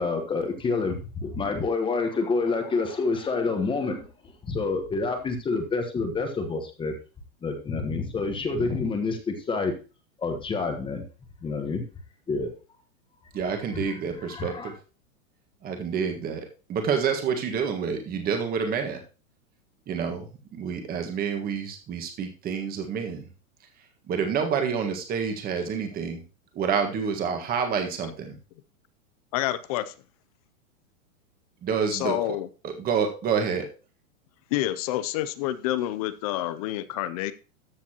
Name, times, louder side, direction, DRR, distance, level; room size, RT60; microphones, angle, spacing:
voice 1, 0.0-4.1 4.4-6.9 7.4-9.7 10.2-11.0 11.4-11.8 12.3-12.5 14.2-14.7, left 4 dB, 10° left, 6 dB, 1.2 m, -28 dB
voice 2, 13.3-14.7 15.6-19.0 19.9-23.3 24.1-26.2 26.5-28.3 31.6-32.1 32.6-33.7, right 6 dB, 20° right, 5 dB, 1.6 m, -28 dB
voice 3, 29.3-30.0 31.9-32.5 34.5-37.3, left 14 dB, 30° left, 15 dB, 0.5 m, -28 dB
13.5 x 7.0 x 2.9 m, 0.34 s
hypercardioid pair, 145°, 43 cm